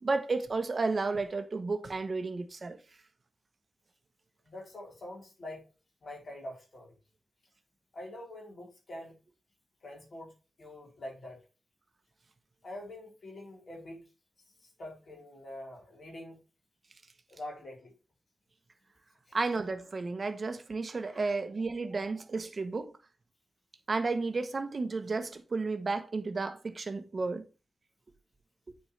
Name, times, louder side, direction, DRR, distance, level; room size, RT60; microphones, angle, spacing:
voice 1, 0.0-2.8 19.3-22.9 23.9-27.4, right 3 dB, 40° right, 1.0 m, -32 dB
voice 2, 4.4-5.7 6.0-6.9 7.9-9.1 9.8-10.3 10.6-11.4 12.6-14.0 14.8-16.4 17.3-17.9 19.3-19.4 21.0-21.2, left 1 dB, 55° left, 4.0 m, -45 dB
9.3 x 4.6 x 3.3 m
wide cardioid pair, 130°, 0 cm